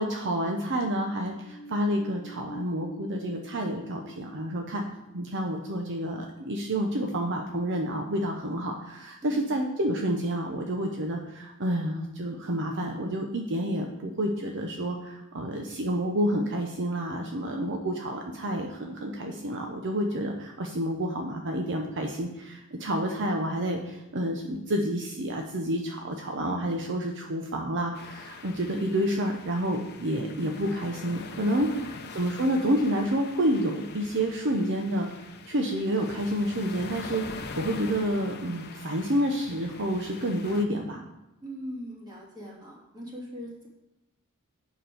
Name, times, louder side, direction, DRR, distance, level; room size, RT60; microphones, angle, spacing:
voice 1, 0.0-4.8 5.1-31.7 32.1-35.1 35.5-41.0, equal, 55° right, 3 dB, 0.8 m, -29 dB
sound 1, 0.9-7.1 7.5-7.6, equal, 10° left, 1.1 m, -47 dB
voice 2, 9.2-9.5 22.8-23.0 31.6-32.0 41.4-43.7, equal, 20° right, -4 dB, 2.7 m, -40 dB
sound 2, 27.9-40.7, left 4 dB, 50° left, 0.9 m, -43 dB
6.9 x 6.1 x 7.7 m, 0.97 s
head